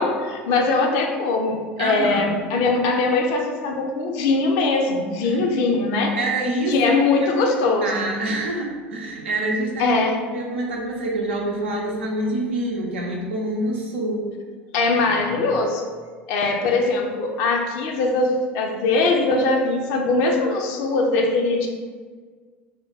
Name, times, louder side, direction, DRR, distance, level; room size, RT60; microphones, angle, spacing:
voice 1, 0.0-6.1 6.7-8.1 9.8-10.2 14.7-15.9 16.3-21.7, left 3 dB, 55° left, 2 dB, 0.5 m, -21 dB
voice 2, 1.8-2.3 5.2-5.4 6.1-6.9 7.2-7.3 7.8-10.0 10.3-14.2, right 1 dB, 75° right, -1 dB, 0.6 m, -26 dB
3.3 x 2.2 x 3.9 m, 1.5 s
figure-of-eight pair, 70°, 6 cm